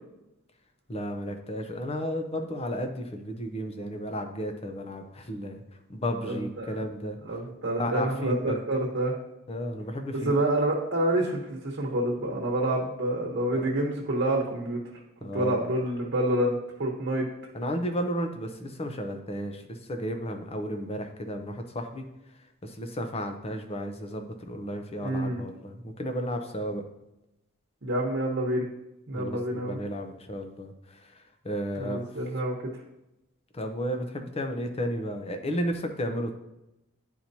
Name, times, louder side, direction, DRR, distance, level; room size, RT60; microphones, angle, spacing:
voice 1, 0.9-5.6 5.9-7.2 7.8-8.6 9.5-10.3 13.5-13.7 15.2-15.6 17.5-22.0 22.6-26.8 29.1-32.0 33.5-36.3, equal, 30° left, 5 dB, 0.7 m, -33 dB
voice 2, 6.2-6.7 7.3-9.1 10.2-14.8 15.3-17.3 25.0-25.4 27.8-28.6 29.1-29.8 31.8-32.5, right 1 dB, 55° right, -3 dB, 1.1 m, -27 dB
10.0 x 4.5 x 2.8 m, 0.89 s
head